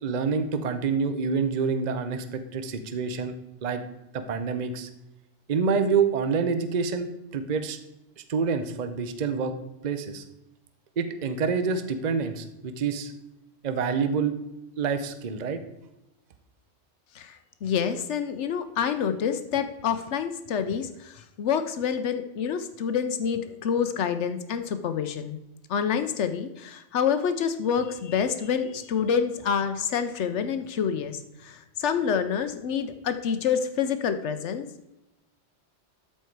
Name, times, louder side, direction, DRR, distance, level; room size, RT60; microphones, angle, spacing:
voice 1, 0.0-3.3 3.6-3.8 4.1-4.9 5.5-7.8 8.2-9.5 9.8-10.2 11.0-13.1 13.6-14.4 14.8-15.6, right 5 dB, 45° right, 9 dB, 0.7 m, -27 dB
voice 2, 17.1-25.4 25.7-34.7, left 7 dB, 75° left, 9 dB, 1.0 m, -27 dB
13.0 x 4.5 x 4.6 m, 0.92 s
omnidirectional pair, 1.2 m